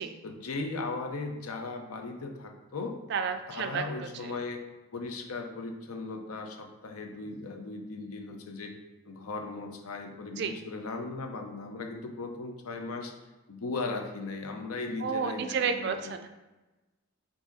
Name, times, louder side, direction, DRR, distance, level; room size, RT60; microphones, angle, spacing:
voice 1, 0.2-2.9 3.5-4.6 4.9-8.7 9.1-13.1 13.5-15.9, left 3 dB, 85° left, 4 dB, 0.6 m, -37 dB
voice 2, 3.1-4.3 10.4-10.5 15.0-16.3, right 6 dB, 50° right, 8 dB, 0.3 m, -31 dB
4.8 x 2.8 x 3.9 m, 1.1 s
head